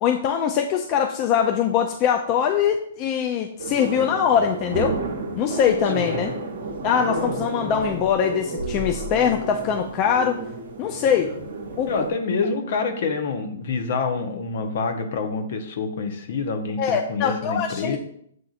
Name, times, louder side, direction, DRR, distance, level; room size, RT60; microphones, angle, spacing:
voice 1, 0.0-5.0 5.4-6.3 6.8-10.4 10.8-11.3 11.8-11.9 16.8-18.0, left 8 dB, 35° left, 5 dB, 0.3 m, -22 dB
sound 1, 3.6-12.1, right 2 dB, 65° right, 0.7 m, -31 dB
voice 2, 11.9-18.0, left 4 dB, 60° left, 6 dB, 0.7 m, -27 dB
7.6 x 2.5 x 2.4 m, 0.66 s
hypercardioid pair, 135°, 0 cm